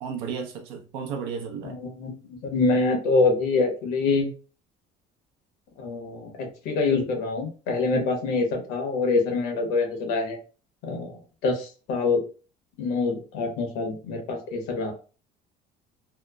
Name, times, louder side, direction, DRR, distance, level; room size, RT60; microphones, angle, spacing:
voice 1, 0.0-1.7, right 6 dB, 90° right, 0.7 m, -33 dB
voice 2, 1.6-4.3 5.8-6.3 6.6-10.4 10.8-11.1 11.4-12.2 12.8-14.9, left 3 dB, 85° left, 0.9 m, -25 dB
2.9 x 2.0 x 2.2 m
cardioid pair, 105°, 16 cm